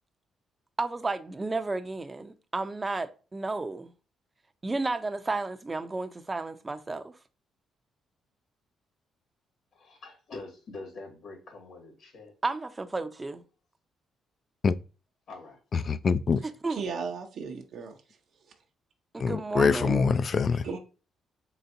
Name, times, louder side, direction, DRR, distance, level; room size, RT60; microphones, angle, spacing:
voice 1, 0.8-3.9 4.6-7.2 12.4-13.4 16.4-16.8 19.1-20.0, right 3 dB, 20° right, 0.5 m, -32 dB
voice 2, 9.7-12.3 15.3-15.6, left 3 dB, 65° left, 2.0 m, -44 dB
voice 3, 15.9-16.4 19.2-20.6, left 5 dB, 45° left, 0.3 m, -24 dB
voice 4, 16.4-17.9 20.6-20.8, right 5 dB, 65° right, 0.7 m, -36 dB
4.0 x 3.3 x 2.6 m
cardioid pair, 90°, 0 cm